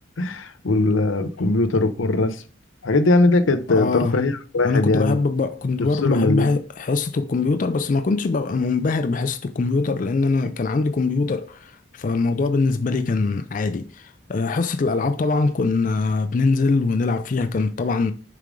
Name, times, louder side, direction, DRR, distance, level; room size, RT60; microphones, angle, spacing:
voice 1, 0.2-2.4 2.8-5.2 5.8-6.5, left 2 dB, 85° left, 0.7 m, -20 dB
voice 2, 3.7-4.3 4.6-18.1, left 3 dB, 40° left, 0.4 m, -22 dB
6.5 x 4.9 x 3.7 m
head